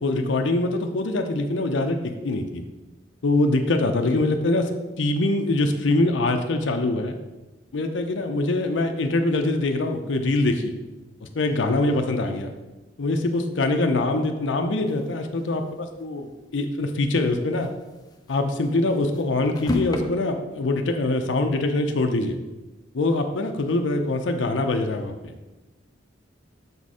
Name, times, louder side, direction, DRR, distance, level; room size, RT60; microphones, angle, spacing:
voice 1, 0.0-2.6 3.2-4.7 5.0-7.2 7.7-10.7 11.2-12.5 13.0-17.7 18.3-22.4 22.9-25.3, left 2 dB, 75° left, 5 dB, 0.6 m, -24 dB
sound 1, 14.9-16.0 16.4-16.5 16.7-16.8 17.4-20.0, left 3 dB, 20° left, 0.5 m, -33 dB
6.9 x 4.2 x 4.8 m, 1.1 s
head